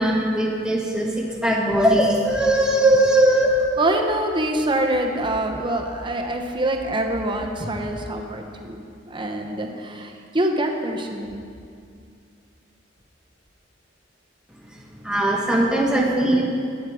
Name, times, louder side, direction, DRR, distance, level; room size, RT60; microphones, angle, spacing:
voice 1, 0.0-3.6 15.0-16.4, right 1 dB, 5° right, -2 dB, 1.4 m, -19 dB
voice 2, 3.8-11.5, right 1 dB, 25° right, 3 dB, 1.0 m, -25 dB
11.5 x 9.4 x 4.8 m, 2.3 s
head